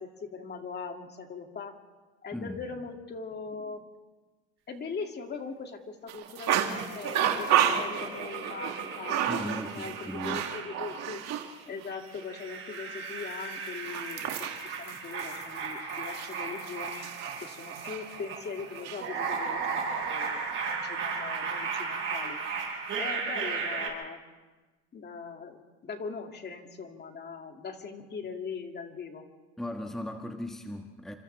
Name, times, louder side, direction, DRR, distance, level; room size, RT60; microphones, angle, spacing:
voice 1, 0.0-1.7 2.2-3.8 4.7-9.4 9.6-11.2 11.7-17.1 17.4-22.4 23.0-24.2 24.9-29.2, left 5 dB, 35° left, 4 dB, 2.4 m, -40 dB
voice 2, 2.3-2.7 9.3-10.5 29.6-31.1, left 1 dB, ahead, 3 dB, 1.4 m, -37 dB
sound 1, 6.1-11.5 11.8-11.9 13.4-18.1 18.6-19.0, right 10 dB, 60° right, 2.2 m, -31 dB
sound 2, 6.7-11.5 12.0-23.9, right 5 dB, 40° right, 7.9 m, -36 dB
29.5 x 25.5 x 3.4 m, 1.3 s
supercardioid pair, 110°, 31 cm